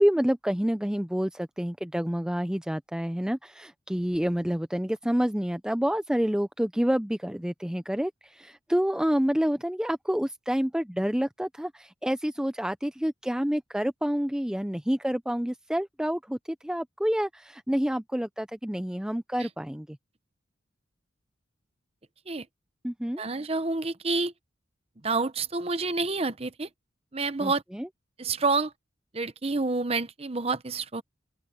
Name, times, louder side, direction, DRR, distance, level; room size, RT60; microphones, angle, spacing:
voice 1, 0.0-20.0 22.8-23.2 27.4-27.9, equal, 5° right, 0.5 m, -28 dB
voice 2, 23.2-24.3 25.0-26.7 27.1-27.6 28.2-28.7 29.1-31.0, right 3 dB, 30° right, 0.8 m, -28 dB
open air
head